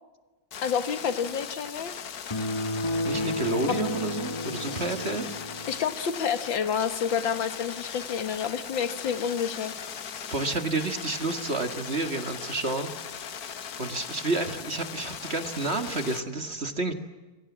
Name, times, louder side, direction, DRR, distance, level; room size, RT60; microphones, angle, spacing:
sound 1, 0.5-16.2, left 7 dB, 55° left, 1.6 m, -39 dB
voice 1, 0.6-1.9 3.7-3.8 4.7-5.0 5.7-9.7, left 7 dB, 85° left, 10 dB, 2.3 m, -29 dB
sound 2, 2.3-5.9, left 1 dB, 20° left, 0.8 m, -32 dB
voice 2, 3.0-5.3 10.3-12.9 13.8-16.9, right 3 dB, 35° right, 7 dB, 2.0 m, -30 dB
27.5 x 23.5 x 7.3 m, 1.2 s
omnidirectional pair, 2.0 m